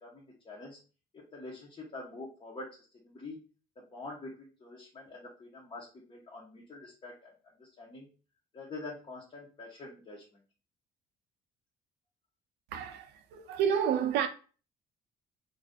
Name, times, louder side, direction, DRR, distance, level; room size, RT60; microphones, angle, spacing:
voice 1, 0.0-0.8 1.3-2.7 3.0-3.4 3.8-7.3 7.6-8.1 8.5-10.2, left 2 dB, 30° left, 1.0 m, -45 dB
voice 2, 12.7-14.3, right 8 dB, 85° right, 0.6 m, -30 dB
2.6 x 2.5 x 3.5 m
cardioid pair, 110°, 17 cm